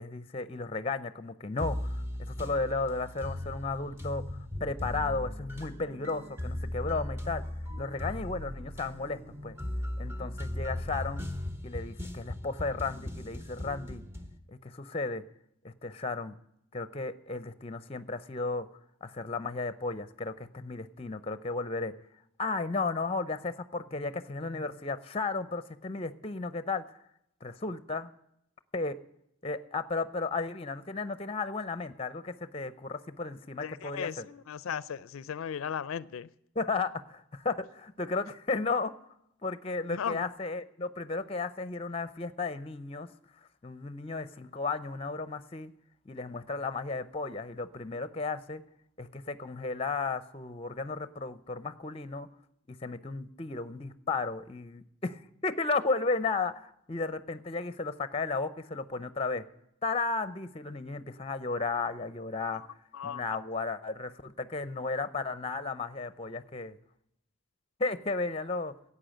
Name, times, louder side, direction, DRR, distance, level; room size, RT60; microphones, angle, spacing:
voice 1, 0.0-7.4 7.8-9.5 10.0-11.2 11.6-14.0 14.5-15.2 15.6-16.4 16.7-18.7 19.0-21.9 22.4-27.0 27.4-28.1 28.7-29.0 29.4-34.3 36.6-38.9 39.4-43.1 43.6-45.7 46.1-48.6 49.0-52.3 52.7-59.4 59.8-62.6 63.0-66.8 67.8-68.7, left 3 dB, 30° left, 0.6 m, -34 dB
sound 1, 1.6-14.4, left 1 dB, 10° right, 0.8 m, -38 dB
voice 2, 33.6-36.3 39.9-40.2 62.5-62.7 62.9-63.2, left 7 dB, 80° left, 0.4 m, -36 dB
11.5 x 8.5 x 8.8 m
head